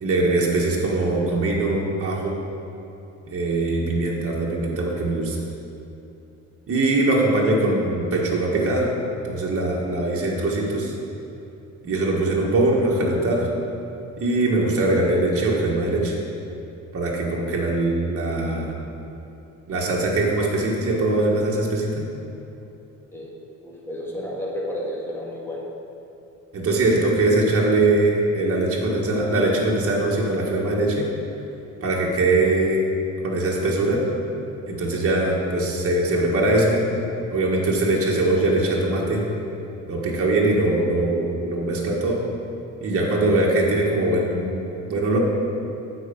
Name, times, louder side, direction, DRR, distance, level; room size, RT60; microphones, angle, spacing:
voice 1, 0.0-2.4 3.3-5.4 6.7-8.9 9.2-10.9 11.8-13.5 14.2-16.2 16.9-18.8 19.7-22.1 26.5-31.1 31.8-32.9 33.2-34.1 34.7-36.8 37.3-39.3 39.9-42.2 42.8-45.2, right 2 dB, 50° right, -3 dB, 1.7 m, -22 dB
voice 2, 23.6-25.6, left 1 dB, 10° left, -5 dB, 2.0 m, -31 dB
9.1 x 4.7 x 7.1 m, 2.9 s
cardioid pair, 90°, 30 cm